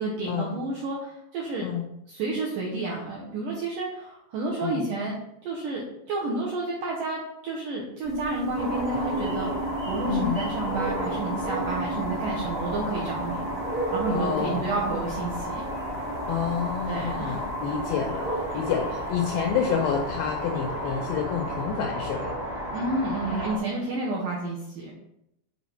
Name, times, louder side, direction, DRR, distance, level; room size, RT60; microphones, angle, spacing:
voice 1, 0.0-1.7 2.1-5.2 5.4-13.4 13.9-15.7 16.9-17.5 22.7-24.9, right 2 dB, 80° right, -3 dB, 1.9 m, -30 dB
sound 1, 8.0-21.4, right 2 dB, 35° right, 0.9 m, -37 dB
sound 2, 8.5-23.6, equal, 35° left, 0.5 m, -32 dB
voice 2, 10.1-10.4 14.1-14.7 16.3-22.3, left 7 dB, 90° left, 2 dB, 2.1 m, -29 dB
7.2 x 4.4 x 4.1 m, 0.81 s
omnidirectional pair, 5.0 m